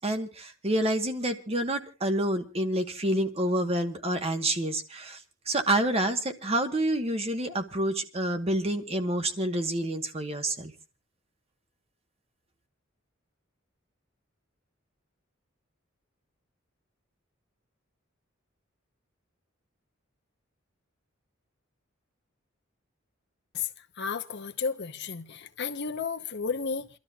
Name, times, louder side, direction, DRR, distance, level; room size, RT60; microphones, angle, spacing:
voice 1, 0.0-5.2 5.5-10.7, right 1 dB, 30° right, 1.3 m, -28 dB
voice 2, 24.0-26.9, left 5 dB, 60° left, 1.0 m, -32 dB
29.0 x 12.5 x 2.4 m
head